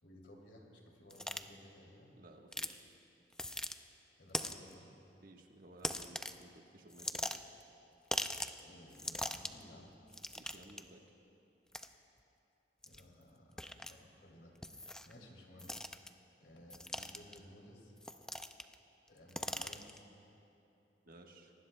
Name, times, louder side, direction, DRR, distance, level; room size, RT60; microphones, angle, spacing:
voice 1, 0.0-2.1 4.2-4.9 8.6-9.9 12.8-15.7 16.4-17.9 19.1-20.1, left 1 dB, 80° left, -1 dB, 2.8 m, -57 dB
sound 1, 1.1-1.4 2.5-2.7 3.3-3.7 4.3-4.7 5.8-6.4 6.9-7.6 8.1-8.6 8.9-9.6 10.1-10.8 11.7-11.9 12.8-13.0 13.6-13.9 14.6-15.1 15.6-16.1 16.7-17.4 18.0-18.7 19.1-20.0, left 1 dB, 5° left, 0.4 m, -40 dB
voice 2, 2.2-3.0 5.2-7.4 10.3-11.0 21.0-21.5, right 1 dB, 55° right, 2 dB, 1.3 m, -57 dB
26.5 x 19.5 x 2.2 m, 2.8 s
head